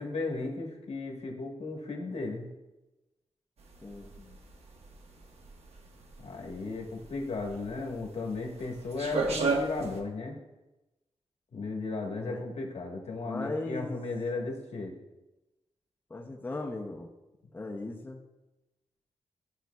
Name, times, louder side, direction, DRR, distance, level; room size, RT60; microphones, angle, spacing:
voice 1, 0.0-2.5 4.2-4.3 6.2-10.4 11.5-14.9, left 3 dB, 70° left, 0 dB, 1.3 m, -35 dB
sound 1, 3.6-10.0, right 3 dB, 70° right, 0.9 m, -34 dB
voice 2, 3.8-4.1 12.1-12.5 13.2-14.0 16.1-17.1 17.5-18.3, left 2 dB, 15° left, 0 dB, 0.5 m, -38 dB
13.0 x 5.2 x 2.3 m, 1.1 s
wide cardioid pair, 175°, 11 cm